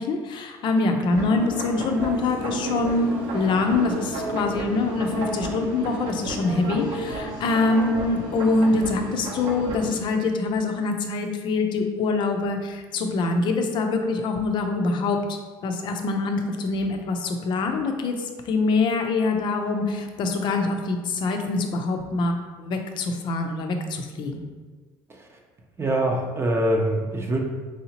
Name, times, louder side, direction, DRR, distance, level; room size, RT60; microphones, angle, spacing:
voice 1, 0.0-24.4, left 3 dB, 55° left, 5 dB, 0.6 m, -24 dB
sound 1, 1.1-10.0, right 2 dB, 65° right, 0.8 m, -32 dB
voice 2, 25.8-27.4, right 1 dB, 25° right, 0 dB, 0.7 m, -24 dB
4.7 x 2.7 x 2.9 m, 1.4 s
supercardioid pair, 100°, 10 cm